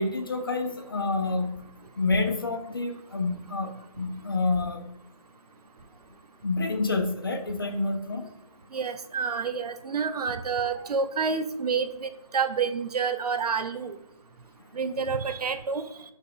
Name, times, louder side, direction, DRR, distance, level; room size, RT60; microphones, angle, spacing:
voice 1, 0.0-1.6 2.0-3.7 4.0-4.8 6.4-8.3, left 3 dB, 35° left, 5 dB, 0.4 m, -28 dB
voice 2, 8.7-14.0 14.7-15.9, right 5 dB, 80° right, 10 dB, 0.4 m, -28 dB
5.5 x 2.2 x 2.3 m, 0.83 s
figure-of-eight pair, 160°, 20 cm